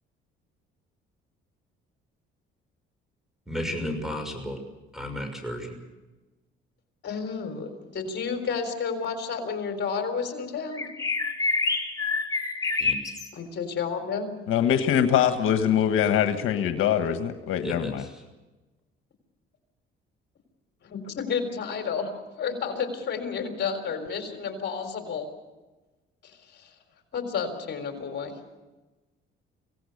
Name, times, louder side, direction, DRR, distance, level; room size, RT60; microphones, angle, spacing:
voice 1, 3.5-4.6 4.9-5.8 12.8-12.9 17.6-17.9, left 1 dB, ahead, 6 dB, 6.3 m, -33 dB
voice 2, 7.0-10.9 13.3-14.3 20.8-25.3 26.2-26.7 27.1-28.3, left 6 dB, 55° left, 6 dB, 4.0 m, -31 dB
sound 1, 10.7-13.3, left 3 dB, 15° left, 3.7 m, -27 dB
voice 3, 14.5-18.0, left 9 dB, 75° left, 7 dB, 1.5 m, -23 dB
26.0 x 17.5 x 6.7 m, 1.1 s
cardioid pair, 95°, 21 cm